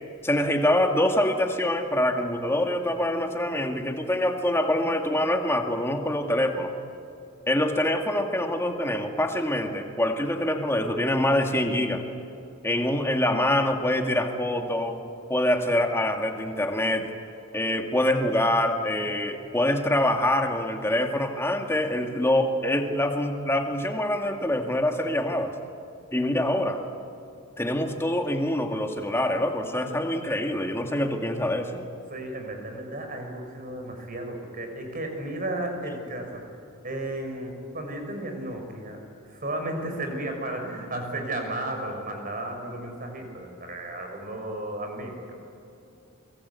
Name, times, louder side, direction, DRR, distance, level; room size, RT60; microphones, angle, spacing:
voice 1, 0.2-6.7 7.5-12.0 12.6-15.0 15.3-17.1 17.5-25.5 26.1-26.8 27.6-31.9, left 1 dB, 10° left, 4 dB, 2.1 m, -25 dB
voice 2, 32.1-36.4 36.8-39.0 39.3-45.1, right 1 dB, 40° right, 4 dB, 5.8 m, -34 dB
28.5 x 23.0 x 8.4 m, 2.7 s
head